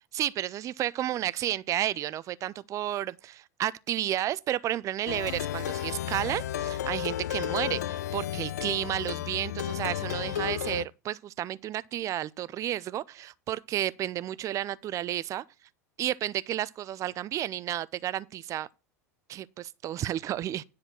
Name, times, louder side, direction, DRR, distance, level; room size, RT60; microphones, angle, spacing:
voice 1, 0.1-15.4 16.0-18.7 19.3-20.6, right 12 dB, 35° right, 0.4 m, -32 dB
Plucked string instrument, 5.1-10.8, left 11 dB, 75° left, 0.4 m, -33 dB
10.0 x 4.3 x 6.1 m
hypercardioid pair, 80°, 9 cm